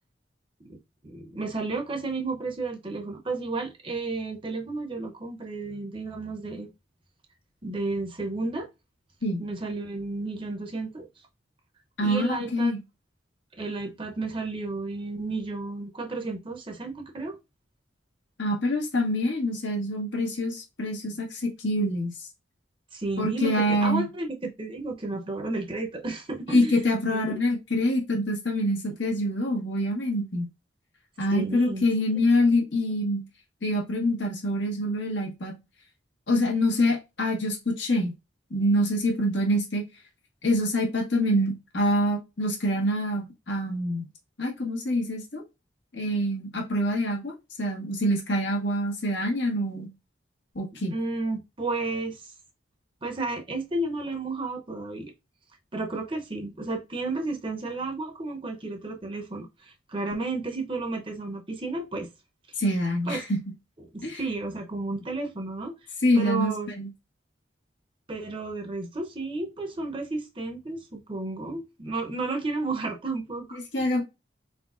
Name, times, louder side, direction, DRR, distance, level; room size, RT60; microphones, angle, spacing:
voice 1, 0.7-6.7 7.6-8.7 9.4-11.1 12.0-12.7 13.6-17.4 22.9-26.8 27.1-27.4 31.3-31.9 32.1-32.2 50.9-52.2 53.0-55.1 55.7-62.1 62.5-62.6 63.1-63.2 63.9-65.8 66.2-66.7 68.1-73.9, right 3 dB, 30° right, 0.7 m, -32 dB
voice 2, 12.0-12.8 18.4-22.1 23.2-24.1 26.5-30.5 31.2-33.2 33.6-35.5 36.3-38.1 38.5-39.8 40.4-44.1 44.4-45.4 45.9-47.3 47.6-49.9 50.5-50.9 62.6-63.4 64.0-64.2 66.0-66.9 73.7-74.0, left 1 dB, 80° left, 1.5 m, -25 dB
4.1 x 4.1 x 2.4 m
head